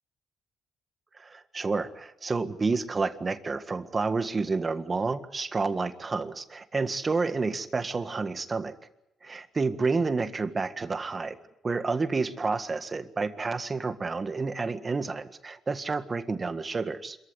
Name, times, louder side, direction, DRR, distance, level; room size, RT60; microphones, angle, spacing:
voice 1, 1.2-8.7 9.2-11.4 11.6-17.2, right 4 dB, 30° right, 9 dB, 1.7 m, -29 dB
26.5 x 14.5 x 9.8 m, 0.89 s
cardioid pair, 90°, 0 cm